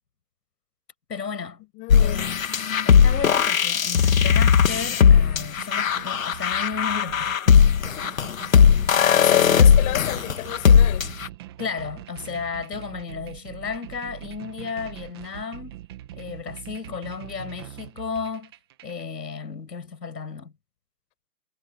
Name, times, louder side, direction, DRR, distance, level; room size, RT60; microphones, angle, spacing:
voice 1, 1.1-1.6 2.0-2.4 2.8-7.5 8.5-8.9 11.6-15.8 16.1-18.5 18.8-20.5, left 5 dB, 75° left, 6.4 m, -34 dB
voice 2, 1.7-2.3 7.9-11.1, left 23 dB, 15° left, 5.5 m, -32 dB
sound 1, 1.9-11.3, left 7 dB, 50° left, 1.9 m, -18 dB
sound 2, 4.1-19.0, right 13 dB, 15° right, 1.7 m, -43 dB
hypercardioid pair, 170°, 50 cm